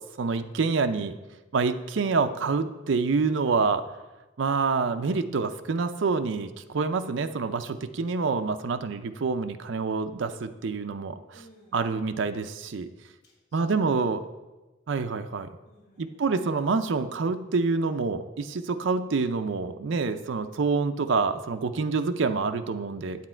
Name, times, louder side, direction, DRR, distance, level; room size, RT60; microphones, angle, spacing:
voice 1, 0.2-1.2 1.5-3.8 4.4-11.2 11.7-12.9 13.5-14.2 14.9-15.5 16.0-23.2, right 4 dB, 75° right, 8 dB, 0.5 m, -27 dB
voice 2, 11.3-11.9 13.2-13.9 15.6-16.5, equal, 55° left, -3 dB, 3.7 m, -51 dB
8.4 x 8.2 x 4.4 m, 1.1 s
head